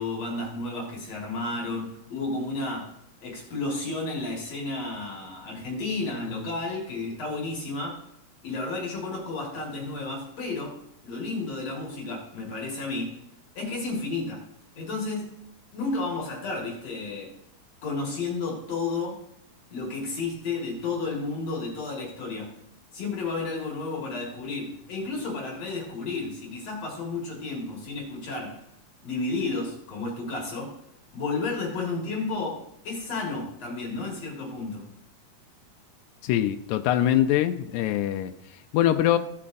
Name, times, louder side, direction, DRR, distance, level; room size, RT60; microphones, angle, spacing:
voice 1, 0.0-3.0 3.2-8.0 8.4-13.2 13.6-14.5 14.8-15.4 15.7-17.3 17.8-19.2 19.7-22.6 22.9-28.6 29.0-30.7 31.1-34.9, left 3 dB, 65° left, -2 dB, 2.9 m, -32 dB
voice 2, 36.2-38.3 38.7-39.2, left 12 dB, 90° left, 7 dB, 2.0 m, -23 dB
16.0 x 8.5 x 2.6 m, 0.76 s
omnidirectional pair, 3.3 m